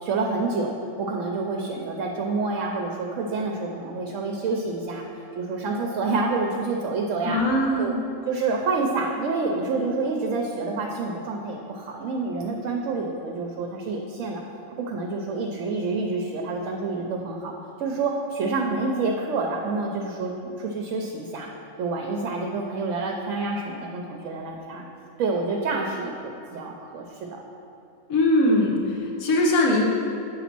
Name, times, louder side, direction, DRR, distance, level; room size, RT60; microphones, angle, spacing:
voice 1, 0.0-5.0 5.3-7.4 7.8-7.9 8.3-14.4 14.8-17.5 17.8-20.3 20.6-21.5 21.8-24.8 25.2-27.4, right 3 dB, 70° right, 1 dB, 0.9 m, -28 dB
voice 2, 7.2-8.0 28.1-29.8, left 1 dB, 75° left, -2 dB, 1.4 m, -21 dB
8.3 x 4.1 x 5.9 m, 2.7 s
omnidirectional pair, 1.5 m